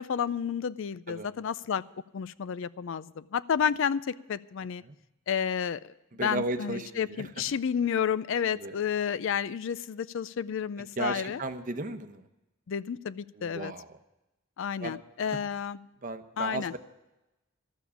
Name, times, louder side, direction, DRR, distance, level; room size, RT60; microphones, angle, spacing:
voice 1, 0.0-1.8 2.1-4.8 5.3-5.9 6.2-11.4 12.7-13.7 14.6-15.8 16.4-16.8, left 7 dB, 65° left, 18 dB, 0.4 m, -31 dB
voice 2, 6.1-7.4 8.5-8.8 10.8-12.3 13.3-14.0 14.8-15.0 16.0-16.8, right 2 dB, 40° right, 8 dB, 0.9 m, -35 dB
13.0 x 7.2 x 10.0 m, 0.96 s
head